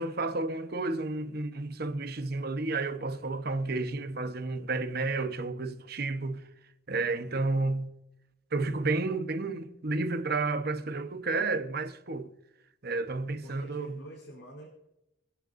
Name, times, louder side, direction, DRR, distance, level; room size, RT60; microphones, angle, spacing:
voice 1, 0.0-6.4 6.9-7.9 8.5-12.3 12.8-14.0, right 3 dB, 55° right, 1.1 m, -31 dB
voice 2, 7.1-7.7 13.4-14.7, equal, 75° left, 4.7 m, -49 dB
25.0 x 10.5 x 2.7 m
head